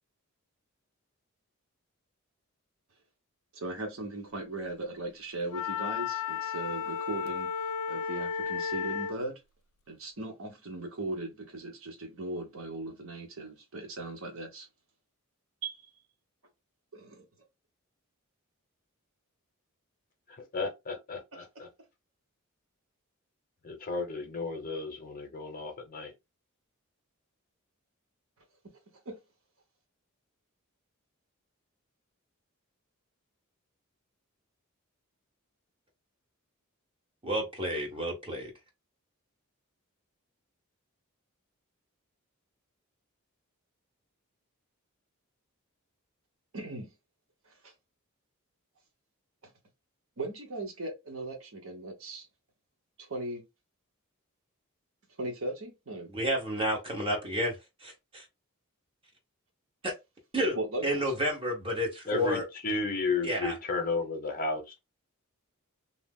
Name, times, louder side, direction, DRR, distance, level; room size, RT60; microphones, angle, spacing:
voice 1, 3.5-7.5 7.9-9.4 9.9-14.7 15.6-15.9 16.9-17.2 21.3-21.6 29.1-29.2 46.5-46.9 47.6-47.7 50.2-52.3 53.0-53.4 55.2-56.1 60.5-61.0, right 2 dB, 65° right, 0.9 m, -38 dB
Wind instrument woodwind instrument, 5.5-9.2, left 6 dB, 80° left, 0.3 m, -33 dB
voice 2, 20.5-21.7 23.6-26.1 62.1-62.4 62.6-64.8, left 3 dB, 40° left, 0.8 m, -33 dB
voice 3, 37.2-38.5 56.1-58.2 59.8-59.9 60.3-60.6 60.8-62.4 63.2-63.5, equal, 25° right, 1.1 m, -30 dB
2.7 x 2.0 x 3.4 m
head